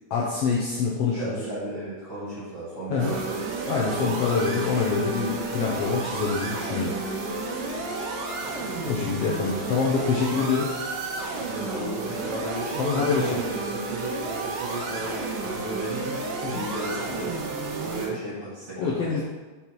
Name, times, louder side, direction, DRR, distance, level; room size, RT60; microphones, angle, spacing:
voice 1, 0.1-1.4 2.9-3.2 3.7-6.9 8.9-10.7 12.8-13.4 16.4-16.6 18.8-19.2, left 5 dB, 80° left, -4 dB, 1.4 m, -25 dB
voice 2, 1.1-3.6 11.4-17.4 17.8-19.2, right 1 dB, 35° right, -8 dB, 2.4 m, -34 dB
sound 1, 3.0-18.1, right 3 dB, 85° right, 2.7 m, -32 dB
5.8 x 5.3 x 4.6 m, 1.3 s
omnidirectional pair, 3.8 m